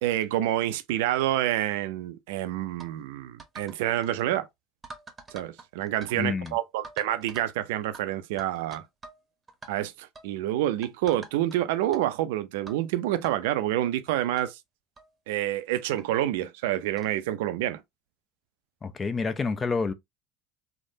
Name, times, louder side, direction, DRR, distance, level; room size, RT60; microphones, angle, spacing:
voice 1, 0.0-4.5 5.3-8.9 9.7-14.6 15.3-17.8, right 13 dB, 70° right, 0.4 m, -28 dB
sound 1, 2.8-2.9 3.4-3.8 4.0-4.3 4.8-6.2 6.4-6.5 6.8-7.5 7.9-8.0 8.4-9.2 9.5-9.7 10.2-10.3 10.8-11.6 11.9-12.0 12.7-12.8 13.2-13.3 14.1-14.2 14.4-14.5 15.0-15.1 16.0-16.1 17.0-17.2, right 3 dB, 25° right, 0.9 m, -45 dB
voice 2, 6.1-6.5 18.8-19.9, left 4 dB, 30° left, 0.5 m, -28 dB
3.2 x 2.1 x 2.6 m
hypercardioid pair, 70°, 0 cm